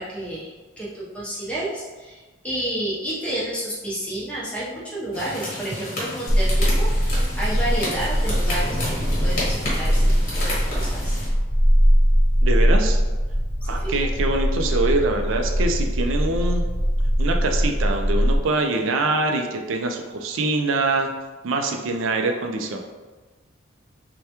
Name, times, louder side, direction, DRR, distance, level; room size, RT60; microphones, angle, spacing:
voice 1, 0.0-11.2 13.6-13.9, right 1 dB, 5° left, -7 dB, 0.7 m, -31 dB
sound 1, 5.1-11.3, left 1 dB, 45° left, 1.1 m, -31 dB
sound 2, 6.3-18.4, equal, 40° right, 0.8 m, -21 dB
voice 2, 12.4-13.0 13.6-16.6 17.2-21.1 21.4-22.8, right 2 dB, 70° right, 4 dB, 0.4 m, -24 dB
3.4 x 2.2 x 2.8 m, 1.3 s
head